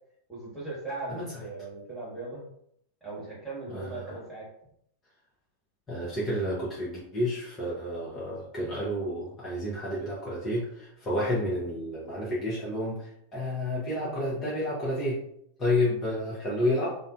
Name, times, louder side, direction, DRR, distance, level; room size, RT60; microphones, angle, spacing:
voice 1, 0.3-2.4 3.0-4.5, right 3 dB, 5° right, -7 dB, 1.3 m, -38 dB
voice 2, 3.7-4.1 5.9-15.2 15.6-17.0, left 1 dB, 25° left, -7 dB, 0.8 m, -30 dB
2.5 x 2.2 x 2.4 m, 0.72 s
figure-of-eight pair, 90°, 0 cm